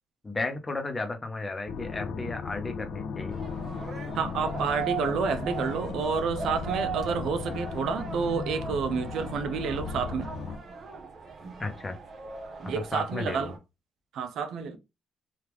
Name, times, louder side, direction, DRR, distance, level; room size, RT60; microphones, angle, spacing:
voice 1, 0.2-3.4 11.6-12.0 12.7-13.5, left 3 dB, 25° left, 0.7 m, -34 dB
sound 1, 1.7-10.6, left 5 dB, 75° left, 0.4 m, -36 dB
sound 2, 3.3-13.6, right 5 dB, 50° right, 0.8 m, -39 dB
voice 2, 4.1-10.3 12.7-13.6 14.1-14.8, right 5 dB, 75° right, 0.5 m, -29 dB
3.4 x 2.4 x 3.0 m
cardioid pair, 90°, 0 cm